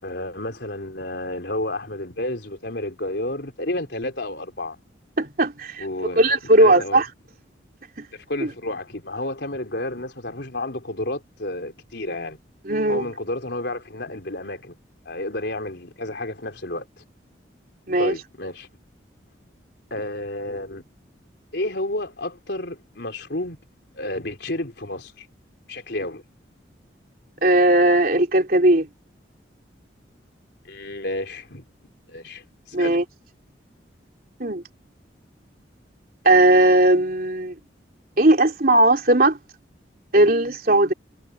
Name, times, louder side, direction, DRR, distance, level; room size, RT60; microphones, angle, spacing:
voice 1, 0.0-4.8 5.8-6.3 6.6-7.0 8.1-12.4 12.9-14.8 15.1-16.9 18.0-18.7 19.9-20.8 21.5-23.6 24.0-25.3 25.7-26.2 30.6-31.6 32.1-33.0, left 1 dB, 65° left, 3.7 m, -31 dB
voice 2, 5.2-5.8 6.2-7.1 8.0-8.1 8.4-8.5 12.6-13.1 17.9-18.1 27.4-28.9 32.7-33.0 34.4-34.6 36.2-37.5 38.2-39.4 40.1-40.9, right 2 dB, 50° right, 3.4 m, -17 dB
head